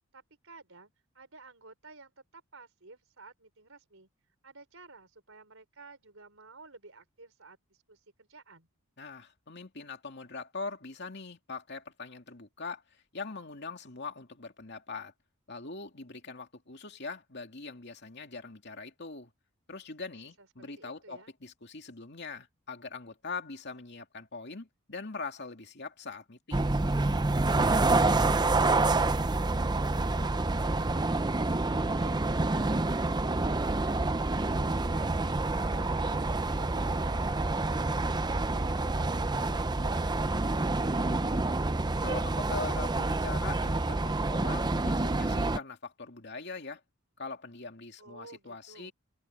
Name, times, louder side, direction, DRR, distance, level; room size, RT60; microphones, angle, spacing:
voice 1, 0.1-4.1 4.4-8.7 20.4-21.3 34.3-36.1 36.6-38.4 48.0-48.9, right 3 dB, 65° right, 5.1 m, -53 dB
voice 2, 9.0-15.1 15.5-19.3 19.7-26.7 42.0-46.8 47.2-48.9, left 4 dB, 50° left, 2.6 m, -42 dB
sound 1, 26.5-45.6, right 2 dB, 20° right, 0.6 m, -28 dB
head